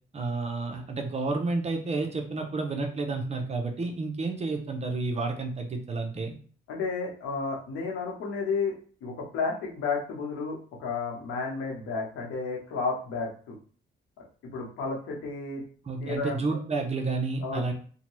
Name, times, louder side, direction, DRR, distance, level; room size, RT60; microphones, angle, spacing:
voice 1, 0.1-6.4 15.9-17.7, right 3 dB, 35° right, 4 dB, 0.6 m, -30 dB
voice 2, 6.7-8.7 9.0-13.5 14.2-15.6 16.0-16.4 17.4-17.7, left 4 dB, 85° left, -2 dB, 1.0 m, -32 dB
2.7 x 2.2 x 3.1 m, 0.43 s
cardioid pair, 90°, 20 cm